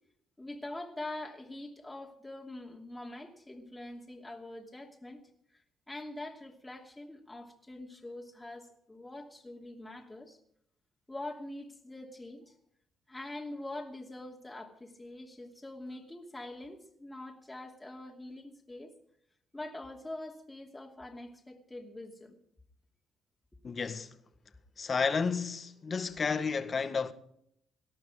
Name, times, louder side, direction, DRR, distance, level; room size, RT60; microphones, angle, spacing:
voice 1, 0.4-5.2 5.5-5.6 5.9-10.4 11.1-12.5 13.1-18.9 19.5-22.4, left 2 dB, 15° left, 2.7 m, -44 dB
voice 2, 23.6-24.1 24.8-27.1, left 5 dB, 40° left, 1.7 m, -31 dB
19.0 x 12.0 x 5.0 m
cardioid pair, 90°, 0 cm